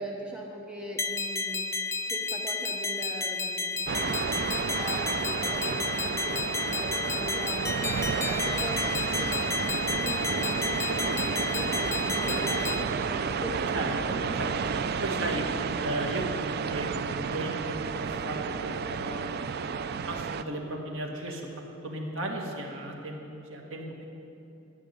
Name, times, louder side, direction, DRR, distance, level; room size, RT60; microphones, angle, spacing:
voice 1, 0.0-1.7 2.1-13.7, equal, 5° right, -1 dB, 1.0 m, -40 dB
sound 1, 1.0-12.8, left 3 dB, 15° left, 0.5 m, -32 dB
sound 2, 3.9-20.4, right 6 dB, 55° right, 0.4 m, -31 dB
voice 2, 13.7-15.4 15.8-23.2 23.5-24.1, right 1 dB, 75° right, 0 dB, 1.9 m, -36 dB
13.0 x 6.0 x 9.5 m, 2.9 s
head